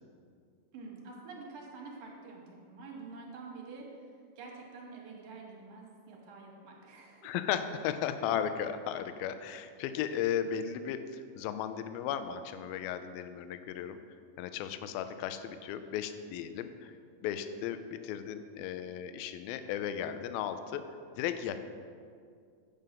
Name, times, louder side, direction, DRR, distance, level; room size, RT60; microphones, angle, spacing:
voice 1, 0.7-3.9 4.4-7.3, right 4 dB, 70° right, -1 dB, 2.9 m, -47 dB
voice 2, 7.2-14.0 14.4-17.0 17.2-20.8 21.2-21.6, left 9 dB, 80° left, 10 dB, 2.3 m, -35 dB
9.0 x 5.5 x 7.5 m, 2.2 s
omnidirectional pair, 4.6 m